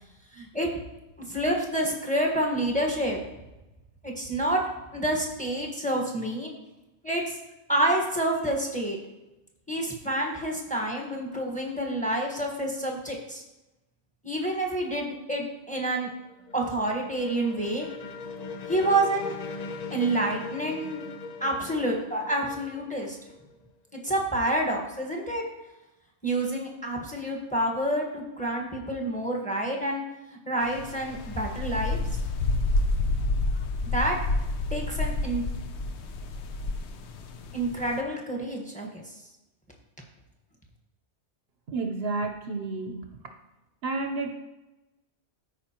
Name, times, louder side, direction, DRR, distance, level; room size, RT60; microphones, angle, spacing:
voice 1, 0.3-0.7 1.2-3.2 4.0-4.6 4.9-6.5 7.0-7.2 7.7-9.0 9.7-13.4 14.2-16.1 16.5-17.9 18.7-19.4 19.9-21.0 21.4-23.2 24.0-25.4 26.2-30.0 30.5-32.0 33.9-34.2 34.7-35.4 37.5-39.0, right 1 dB, 5° left, 0 dB, 1.3 m, -28 dB
sound 1, 15.9-23.7, left 4 dB, 45° left, 0.6 m, -40 dB
sound 2, 30.6-38.0, left 2 dB, 70° left, 0.9 m, -29 dB
voice 2, 41.7-43.0 43.8-44.3, right 3 dB, 60° right, 4 dB, 1.0 m, -30 dB
13.5 x 5.0 x 2.9 m, 0.98 s
omnidirectional pair, 1.2 m